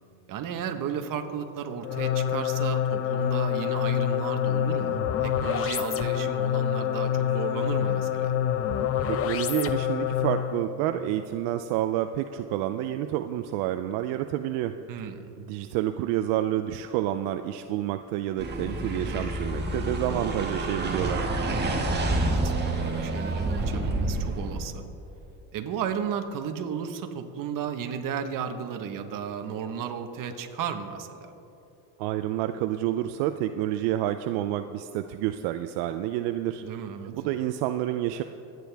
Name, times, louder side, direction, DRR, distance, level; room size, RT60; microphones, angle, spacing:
voice 1, 0.3-8.3 14.9-15.3 21.6-22.5 22.8-24.8 25.5-31.3 36.6-37.1, right 7 dB, 50° right, 6 dB, 1.3 m, -34 dB
sound 1, 1.8-10.6, left 10 dB, 35° left, 0.6 m, -26 dB
voice 2, 9.1-14.7 15.4-21.3 32.0-36.6 37.0-38.2, right 13 dB, 75° right, 9 dB, 0.6 m, -29 dB
sound 2, 18.4-24.7, right 2 dB, 25° right, 1.8 m, -28 dB
25.5 x 9.4 x 3.5 m, 2.9 s
cardioid pair, 125°, 42 cm